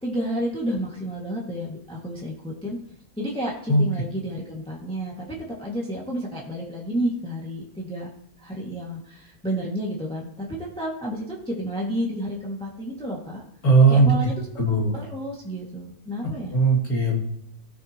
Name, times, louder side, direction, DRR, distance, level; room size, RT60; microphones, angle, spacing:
voice 1, 0.0-2.8 3.2-8.1 8.4-13.4 13.9-14.5 14.9-16.5, equal, 5° left, -4 dB, 1.9 m, -31 dB
voice 2, 13.6-14.1 14.6-14.9 16.5-17.2, right 3 dB, 70° left, -3 dB, 3.3 m, -17 dB
17.0 x 7.2 x 3.0 m, 0.74 s
omnidirectional pair, 1.6 m